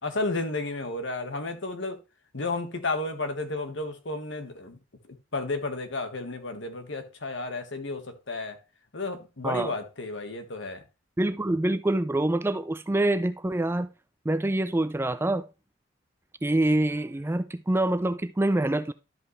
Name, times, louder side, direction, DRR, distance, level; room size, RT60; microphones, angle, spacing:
voice 1, 0.0-2.0 2.3-4.8 5.1-8.6 8.9-10.8, left 2 dB, 65° left, 1.4 m, -32 dB
voice 2, 11.2-13.9 14.3-15.4 16.4-18.9, right 1 dB, 10° right, 0.3 m, -25 dB
12.0 x 5.5 x 3.1 m
head